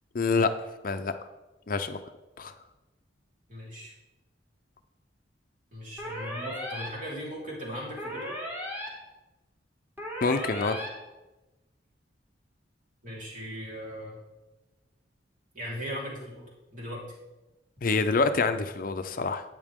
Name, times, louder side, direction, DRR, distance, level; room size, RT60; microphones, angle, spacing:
voice 1, 0.1-0.5 0.8-1.1 1.7-2.0 2.4-2.5 10.2-10.8 17.8-19.4, left 4 dB, 50° left, 9 dB, 0.5 m, -26 dB
voice 2, 3.5-3.9 5.7-8.3 13.0-14.2 15.5-16.5 16.7-17.0, equal, 45° right, -5 dB, 3.8 m, -38 dB
sound 1, 6.0-6.9 8.0-8.9 10.0-10.9, equal, 10° right, 2.6 m, -36 dB
12.5 x 9.0 x 3.6 m, 1.1 s
head